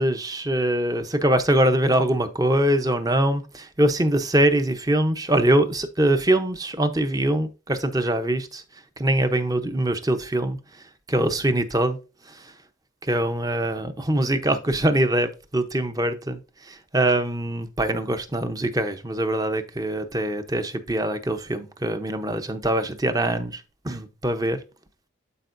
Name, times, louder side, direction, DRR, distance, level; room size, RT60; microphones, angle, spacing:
voice 1, 0.0-8.6 9.0-10.6 11.1-12.0 12.3-12.4 13.0-16.4 16.7-24.6, right 1 dB, 20° right, 0.8 m, -23 dB
12.0 x 4.6 x 2.6 m
head